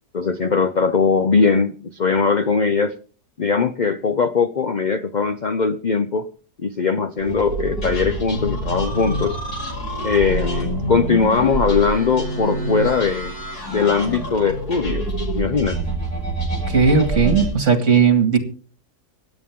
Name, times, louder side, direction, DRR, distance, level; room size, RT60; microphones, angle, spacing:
voice 1, 0.1-3.0 3.4-6.3 6.6-9.4 10.0-13.3 13.7-15.1 15.3-15.8, left 5 dB, 55° left, 11 dB, 0.5 m, -20 dB
sound 1, 7.2-17.5, right 1 dB, 70° left, 6.5 m, -26 dB
voice 2, 16.7-18.4, right 6 dB, 50° right, 8 dB, 2.4 m, -16 dB
25.0 x 9.2 x 3.6 m, 0.39 s
omnidirectional pair, 1.7 m